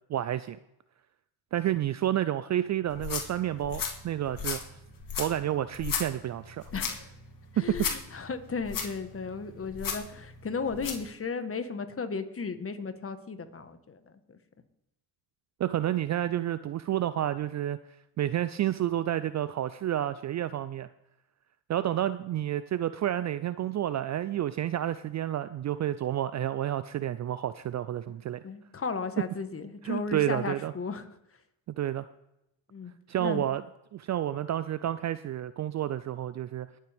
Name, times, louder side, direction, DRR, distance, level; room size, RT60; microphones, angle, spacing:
voice 1, 0.1-0.6 1.5-4.6 5.2-6.6 7.6-7.9 15.6-17.8 18.2-20.9 21.7-28.4 29.8-30.7 31.7-32.1 33.1-33.6 33.9-36.7, right 12 dB, 40° right, 14 dB, 0.4 m, -30 dB
sound 1, 2.9-11.1, left 6 dB, 45° left, 2.6 m, -36 dB
voice 2, 6.7-7.1 7.5-14.0 14.3-14.4 28.4-31.1 32.7-32.9 33.2-33.4, left 5 dB, 30° left, 9 dB, 1.5 m, -35 dB
20.0 x 7.4 x 3.5 m, 0.86 s
supercardioid pair, 70°, 48 cm